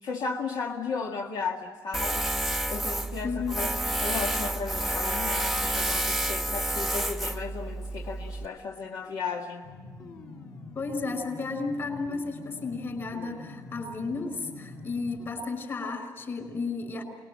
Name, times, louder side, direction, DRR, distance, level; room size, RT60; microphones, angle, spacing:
voice 1, 0.0-2.3 2.7-9.6, left 5 dB, 75° left, 0 dB, 2.1 m, -35 dB
Tools, 1.9-8.5, right 1 dB, ahead, 1.0 m, -29 dB
voice 2, 3.2-3.8 10.7-17.0, left 4 dB, 35° left, 6 dB, 5.2 m, -33 dB
sound 1, 9.6-15.3, left 3 dB, 55° left, 5.5 m, -45 dB
28.0 x 20.5 x 7.7 m, 1.5 s
cardioid pair, 165°, 7 cm